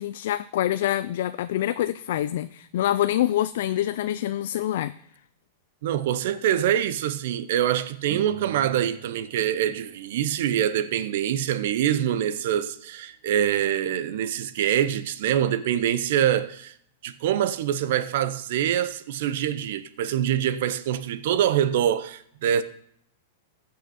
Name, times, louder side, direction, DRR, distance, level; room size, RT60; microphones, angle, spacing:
voice 1, 0.0-4.9, left 12 dB, 70° left, 0.3 m, -26 dB
voice 2, 5.8-16.7 17.0-22.6, right 10 dB, 65° right, 0.7 m, -25 dB
sound 1, 8.1-10.7, right 13 dB, 50° right, 2.1 m, -42 dB
15.0 x 5.6 x 4.3 m
hypercardioid pair, 140°, 0 cm